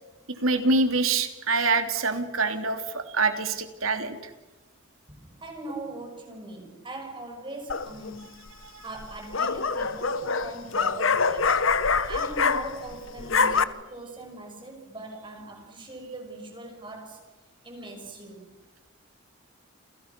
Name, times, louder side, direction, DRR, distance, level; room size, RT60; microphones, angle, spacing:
voice 1, 0.4-4.3 8.6-8.8, right 3 dB, 80° right, 7 dB, 3.0 m, -25 dB
voice 2, 5.1-8.5 8.8-17.2 17.6-18.6, right 2 dB, 25° right, 3 dB, 6.4 m, -41 dB
sound 1, 7.7-8.1 9.0-12.9 13.2-13.6, left 5 dB, 70° left, 1.2 m, -25 dB
30.0 x 29.0 x 6.1 m, 1.1 s
head